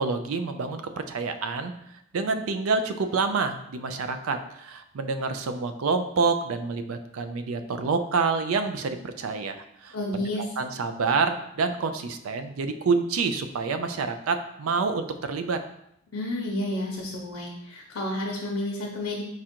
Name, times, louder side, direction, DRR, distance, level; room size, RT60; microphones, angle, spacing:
voice 1, 0.0-1.8 2.1-10.0 10.6-15.6, right 4 dB, 80° right, 8 dB, 0.4 m, -27 dB
voice 2, 9.9-10.4 16.1-19.2, left 1 dB, 75° left, -2 dB, 0.7 m, -30 dB
4.7 x 2.5 x 4.3 m, 0.78 s
head